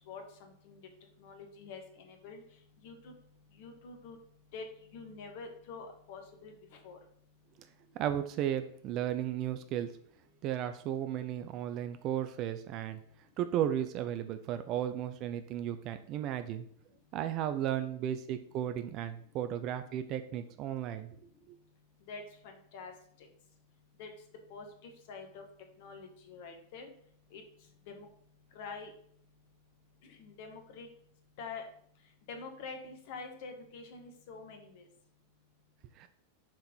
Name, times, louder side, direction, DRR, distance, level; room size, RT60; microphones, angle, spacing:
voice 1, 0.1-0.8 1.2-2.4 2.8-3.1 3.5-4.2 4.5-4.7 4.9-6.5 6.8-7.0 22.1-22.9 23.2-23.3 24.0-24.1 24.5-25.4 25.8-26.9 27.3-27.4 27.9-28.1 28.5-28.9 30.0-30.9 31.4-31.6 32.3-34.9, left 4 dB, 50° left, 4 dB, 1.6 m, -46 dB
voice 2, 7.9-9.9 10.4-13.0 13.4-16.7 17.1-21.1 21.5-21.6 36.0-36.1, right 10 dB, 40° right, 10 dB, 0.6 m, -34 dB
7.5 x 4.7 x 5.3 m, 0.63 s
figure-of-eight pair, 90°, 0 cm